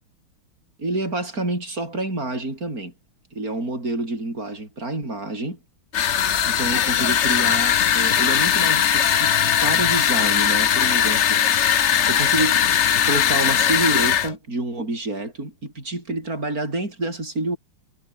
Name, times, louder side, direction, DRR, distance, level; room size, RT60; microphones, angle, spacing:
voice 1, 0.8-2.9 3.3-5.6 6.5-12.7 13.0-17.6, right 2 dB, 40° right, 8.2 m, -28 dB
sound 1, 5.9-14.3, left 9 dB, 60° left, 0.7 m, -19 dB
omnidirectional pair, 2.3 m